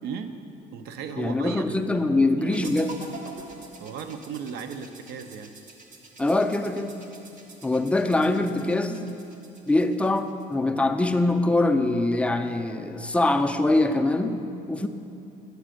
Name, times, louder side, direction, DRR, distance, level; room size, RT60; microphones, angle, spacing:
voice 1, 0.0-0.3 0.7-2.8 3.8-5.5, right 6 dB, 75° right, 7 dB, 0.5 m, -36 dB
voice 2, 1.2-3.0 6.2-6.9 7.6-9.0 9.7-14.9, left 2 dB, 5° left, 6 dB, 0.3 m, -23 dB
sound 1, 2.5-10.6, right 3 dB, 50° right, 0.8 m, -47 dB
8.2 x 4.1 x 6.3 m, 2.7 s
cardioid pair, 110°, 17 cm